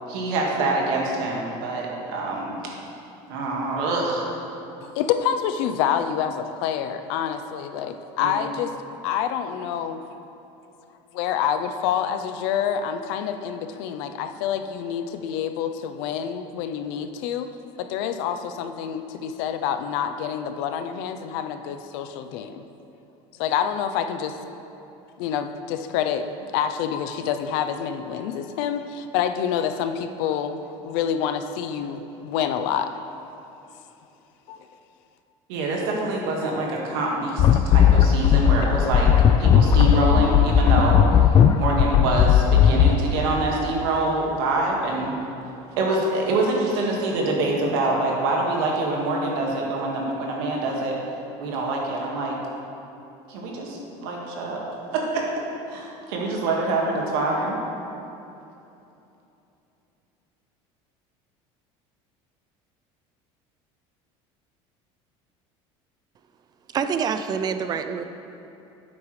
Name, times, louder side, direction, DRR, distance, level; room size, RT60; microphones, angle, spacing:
voice 1, 0.1-2.7 3.3-4.3 8.2-8.4 35.5-41.0 41.6-45.2 45.7-51.0 51.4-52.4 53.3-54.6 54.9-55.2 55.7-57.6, right 2 dB, 85° right, -2 dB, 1.8 m, -25 dB
voice 2, 4.8-8.7 9.0-10.0 11.1-17.5 17.8-22.6 23.4-24.4 25.2-26.3 26.5-30.6 30.8-32.9 34.5-34.6, left 8 dB, 80° left, 8 dB, 0.6 m, -27 dB
sound 1, 37.4-43.0, left 8 dB, 35° left, 0.4 m, -17 dB
voice 3, 66.7-68.0, right 6 dB, 30° right, 9 dB, 0.5 m, -26 dB
10.5 x 8.3 x 3.2 m, 2.9 s
cardioid pair, 135°, 13 cm